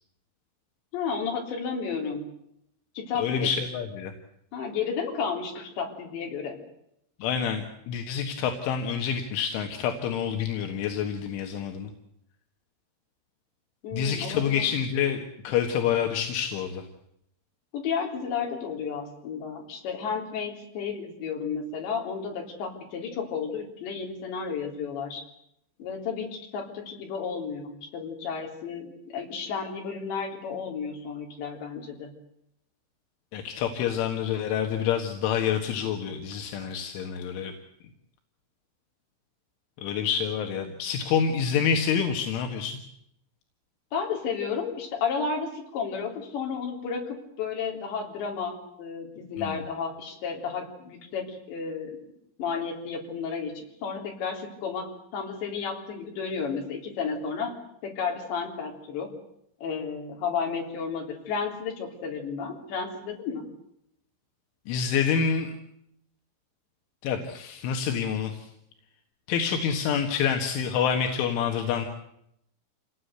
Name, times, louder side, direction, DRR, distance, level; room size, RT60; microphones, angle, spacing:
voice 1, 0.9-2.3 3.0-3.5 4.5-6.6 13.8-14.6 17.7-25.2 25.8-32.1 43.9-52.0 52.4-57.5 57.8-59.1 59.6-63.5, left 6 dB, 70° left, 2 dB, 5.7 m, -32 dB
voice 2, 3.2-4.1 7.2-11.9 13.9-16.9 33.3-37.5 39.8-42.8 49.4-49.6 64.7-65.5 67.0-68.5 69.3-71.9, left 7 dB, 85° left, 4 dB, 4.1 m, -27 dB
27.5 x 18.5 x 8.1 m, 0.77 s
omnidirectional pair, 5.4 m